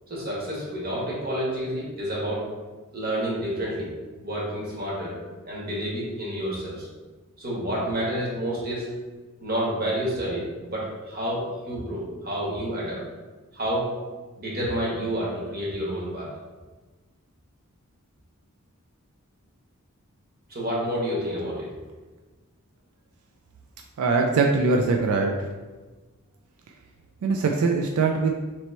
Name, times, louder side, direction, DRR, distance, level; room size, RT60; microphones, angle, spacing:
voice 1, 0.1-2.5 2.9-3.9 4.2-5.2 5.4-6.9 7.4-8.9 9.4-13.0 13.5-13.9 14.4-16.3 20.5-21.7, equal, 45° right, -6 dB, 1.3 m, -29 dB
voice 2, 24.0-25.3 27.2-28.3, right 4 dB, 90° right, 2 dB, 0.4 m, -22 dB
3.0 x 3.0 x 4.3 m, 1.3 s
head